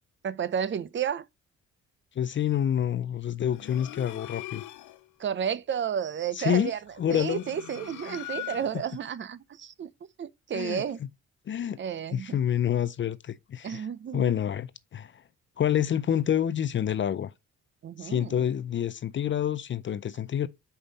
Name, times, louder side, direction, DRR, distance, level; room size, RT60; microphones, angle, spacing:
voice 1, 0.2-1.2 5.2-6.8 7.1-9.9 10.2-11.0 11.8-12.4 13.6-14.3 17.8-18.4, right 8 dB, 40° right, 0.6 m, -32 dB
voice 2, 2.2-4.6 6.3-6.7 7.0-7.4 8.1-8.3 10.5-10.8 11.5-11.8 12.1-13.9 14.1-15.1 15.6-17.3 18.0-20.5, left 9 dB, 40° left, 0.5 m, -28 dB
sound 1, 3.5-5.1 6.9-9.0, left 14 dB, 90° left, 0.8 m, -41 dB
5.7 x 5.1 x 4.0 m
cardioid pair, 90°, 30 cm